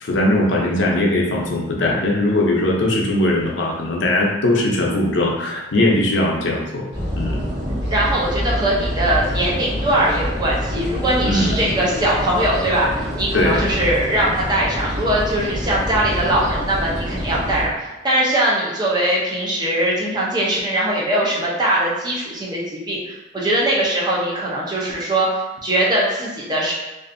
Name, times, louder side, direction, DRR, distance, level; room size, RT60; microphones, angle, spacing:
voice 1, 0.0-6.9 7.2-7.4 11.2-11.6 13.3-13.7, left 1 dB, 75° left, -1 dB, 0.5 m, -19 dB
sound 1, 6.9-17.7, equal, 65° right, 1.2 m, -26 dB
voice 2, 7.9-25.3 25.6-26.7, right 1 dB, 20° right, -5 dB, 0.5 m, -21 dB
2.5 x 2.4 x 2.5 m, 1.0 s
head